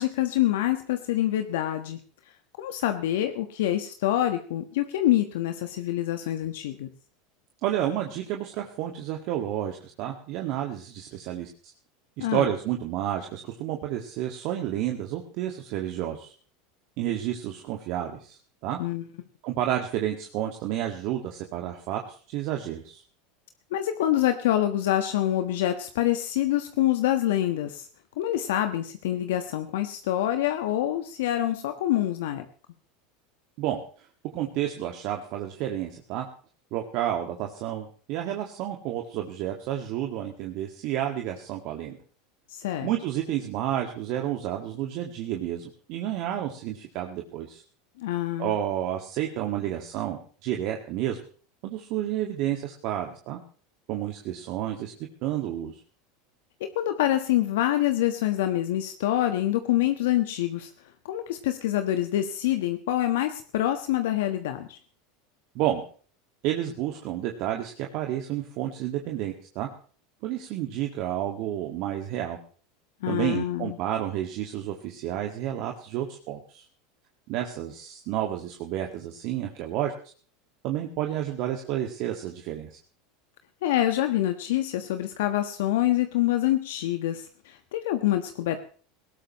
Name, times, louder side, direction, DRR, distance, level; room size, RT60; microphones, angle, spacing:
voice 1, 0.0-2.0 2.6-6.9 12.2-12.5 18.8-19.0 23.7-27.9 28.2-32.4 42.5-42.9 48.0-48.6 56.6-60.7 61.0-64.8 73.0-73.7 83.6-88.6, left 13 dB, 70° left, 7 dB, 1.3 m, -26 dB
voice 2, 7.6-11.5 12.3-16.3 17.0-18.8 19.4-22.0 22.3-23.0 33.6-34.1 34.3-36.3 36.7-42.0 42.8-47.6 48.4-51.2 51.6-53.4 53.9-54.9 55.2-55.8 65.6-65.8 66.4-69.7 70.2-72.4 73.1-76.7 77.3-79.9 80.6-82.8, right 12 dB, 55° right, 2 dB, 2.0 m, -30 dB
19.5 x 17.5 x 3.1 m, 0.43 s
hypercardioid pair, 85°, 0 cm